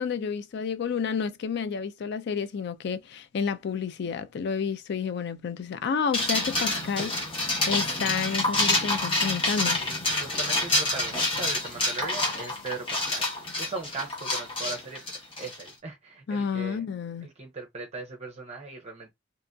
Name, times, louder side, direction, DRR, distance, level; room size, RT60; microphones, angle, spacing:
voice 1, 0.0-7.2 7.7-9.8 16.3-17.3, left 6 dB, 60° left, 0.4 m, -30 dB
sound 1, 6.1-15.7, left 2 dB, 30° left, 0.9 m, -27 dB
voice 2, 9.6-13.3 13.6-15.0 15.4-16.8 17.2-19.1, right 3 dB, 35° right, 0.6 m, -39 dB
2.8 x 2.6 x 2.2 m
head